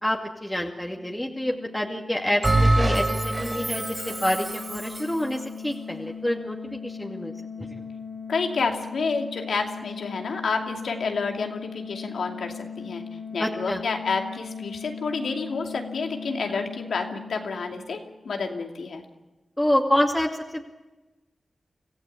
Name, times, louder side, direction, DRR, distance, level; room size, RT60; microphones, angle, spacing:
voice 1, 0.0-7.3 7.6-7.8 13.4-13.8 19.6-20.6, left 1 dB, 10° left, 0 dB, 2.4 m, -27 dB
sound 1, 0.8-18.3, left 5 dB, 60° left, 3.1 m, -39 dB
Bell, 2.4-5.2, right 2 dB, 35° right, 5.9 m, -24 dB
voice 2, 8.3-13.0 13.3-19.0, left 4 dB, 85° left, 3 dB, 2.6 m, -29 dB
25.5 x 15.5 x 8.5 m, 1.1 s
cardioid pair, 45°, 0 cm